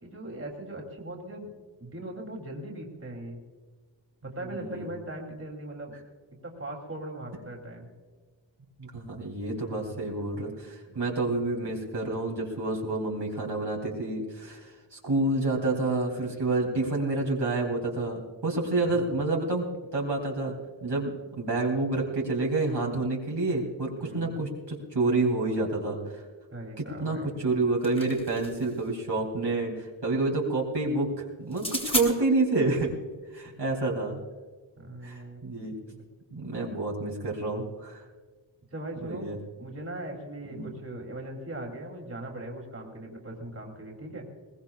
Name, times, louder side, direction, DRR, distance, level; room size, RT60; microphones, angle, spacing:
voice 1, 0.0-3.4 4.2-6.0 6.4-7.9 9.4-10.0 10.9-11.0 18.8-19.3 24.0-24.4 26.5-27.4 33.4-33.5 34.8-35.4 35.8-36.0 38.7-39.3 39.6-44.3, right 1 dB, 30° right, 0 dB, 3.0 m, -40 dB
voice 2, 4.5-4.9 8.8-19.7 19.9-26.2 26.8-32.9 33.3-34.2 35.0-35.7 36.3-38.0 39.0-39.4 40.5-40.7, right 2 dB, 60° right, -2 dB, 2.9 m, -29 dB
sound 1, 27.5-28.8 31.5-32.1, left 1 dB, 10° left, 3.3 m, -32 dB
21.5 x 19.5 x 2.4 m, 1.5 s
wide cardioid pair, 95°, 46 cm